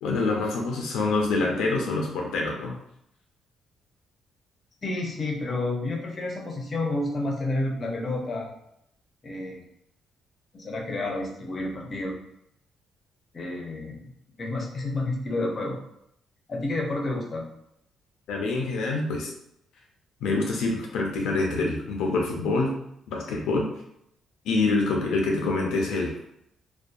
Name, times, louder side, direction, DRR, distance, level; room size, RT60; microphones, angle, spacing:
voice 1, 0.0-2.8 18.3-19.3 20.2-22.8 23.1-23.7 24.5-26.1, left 3 dB, 85° left, 0 dB, 0.5 m, -26 dB
voice 2, 4.8-8.5 9.2-9.6 10.5-12.2 13.3-14.1 14.4-15.8 16.5-17.5, left 2 dB, 40° left, 0 dB, 0.6 m, -30 dB
2.6 x 2.2 x 2.3 m, 0.76 s
cardioid pair, 90°, 0 cm